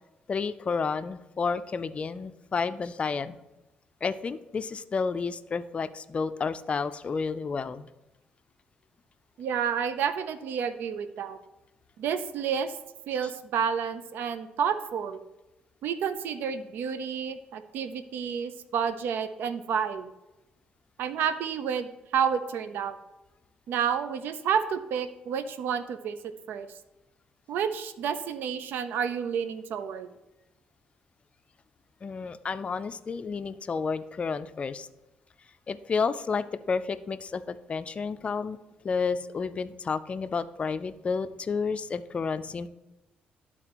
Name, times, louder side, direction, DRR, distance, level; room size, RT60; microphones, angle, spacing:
voice 1, 0.3-3.4 4.0-7.9 32.0-34.9 35.7-38.6 38.8-42.7, left 5 dB, 35° left, 12 dB, 0.4 m, -31 dB
voice 2, 9.4-11.4 12.0-12.7 13.1-15.2 15.8-20.1 21.0-23.0 23.7-26.2 26.5-26.7 27.5-30.1, right 7 dB, 75° right, 11 dB, 0.5 m, -30 dB
12.0 x 4.1 x 2.9 m, 1.0 s
cardioid pair, 100°, 3 cm